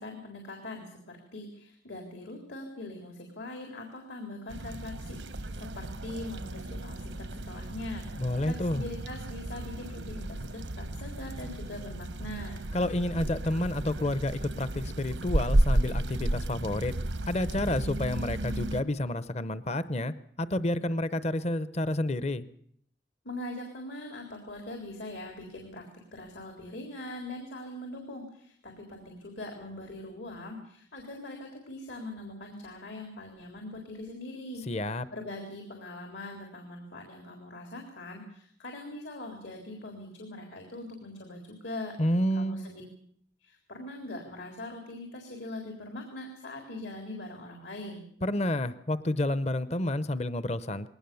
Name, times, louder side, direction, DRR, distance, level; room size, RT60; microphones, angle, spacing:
voice 1, 0.0-12.6 23.2-25.8 26.1-41.9 42.3-42.8 43.4-48.0, left 1 dB, 80° left, 2 dB, 3.9 m, -42 dB
sound 1, 4.5-18.8, right 1 dB, 90° right, 1.1 m, -33 dB
voice 2, 8.2-8.8 12.7-16.9 17.3-22.4 34.7-35.0 42.0-42.7 48.2-50.9, left 1 dB, 35° left, 14 dB, 0.7 m, -30 dB
21.0 x 18.5 x 7.0 m, 0.66 s
head